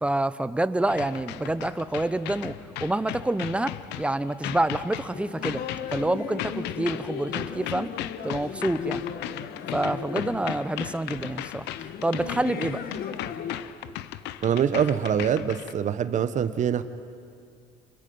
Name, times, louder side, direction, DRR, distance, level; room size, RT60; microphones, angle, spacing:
voice 1, 0.0-2.5 2.8-5.6 5.9-7.9 8.2-9.0 9.7-11.6 12.0-12.8, right 1 dB, 5° right, 13 dB, 0.7 m, -27 dB
sound 1, 0.9-15.7, left 13 dB, 85° left, 0.7 m, -37 dB
sound 2, 5.1-13.6, left 7 dB, 65° left, 1.4 m, -37 dB
voice 2, 14.4-16.8, right 8 dB, 45° right, 13 dB, 0.9 m, -24 dB
27.0 x 22.5 x 5.4 m, 2.4 s
cardioid pair, 110°, 17 cm